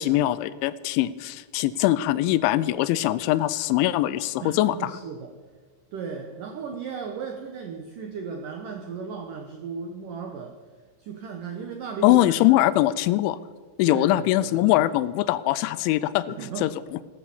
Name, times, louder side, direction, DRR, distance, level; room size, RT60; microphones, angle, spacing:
voice 1, 0.0-4.9 12.0-13.4 13.8-16.3 16.6-16.7, left 15 dB, 85° left, 16 dB, 2.9 m, -22 dB
voice 2, 4.4-5.3 5.9-10.5 11.0-12.2 12.7-12.8 13.9-14.7 16.3-16.7, right 6 dB, 80° right, 4 dB, 1.9 m, -35 dB
15.5 x 13.0 x 7.1 m, 1.4 s
omnidirectional pair, 5.5 m